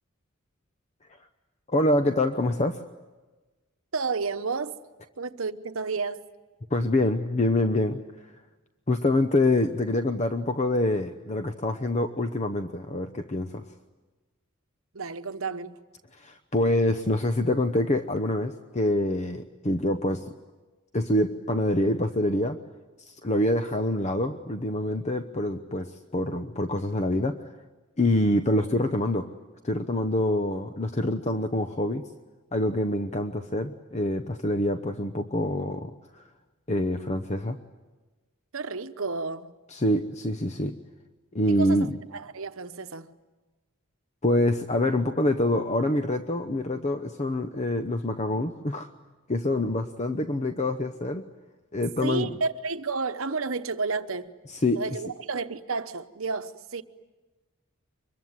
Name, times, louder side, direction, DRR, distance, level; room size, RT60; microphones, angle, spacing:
voice 1, 1.7-2.8 6.7-8.0 8.9-13.6 16.1-20.3 20.9-22.6 23.1-27.5 28.0-29.3 29.6-32.1 32.5-36.2 36.7-37.6 39.7-40.8 41.3-42.0 44.2-48.9 49.3-51.2 51.7-52.3 54.5-55.0, left 1 dB, 35° left, 0.9 m, -26 dB
voice 2, 3.9-4.8 5.2-6.3 14.9-15.8 38.5-39.5 41.5-41.8 42.1-43.2 52.0-54.3 54.7-56.8, right 4 dB, 70° right, 1.0 m, -31 dB
24.5 x 22.5 x 9.6 m
head